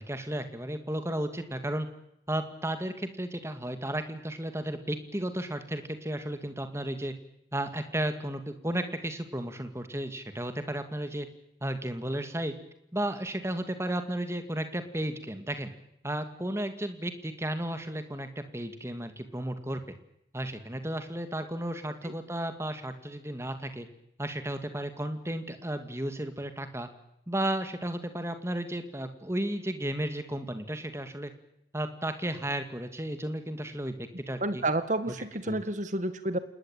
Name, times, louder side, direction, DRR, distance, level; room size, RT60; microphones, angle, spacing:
voice 1, 0.0-1.9 2.3-7.1 7.5-11.3 11.6-12.5 12.9-15.7 16.0-19.8 20.3-23.9 24.2-26.9 27.3-31.3 31.7-34.6 35.5-35.6, right 1 dB, 15° right, 8 dB, 2.4 m, -33 dB
voice 2, 34.4-36.4, right 2 dB, 45° right, 11 dB, 2.0 m, -30 dB
28.5 x 19.5 x 9.2 m, 0.79 s
head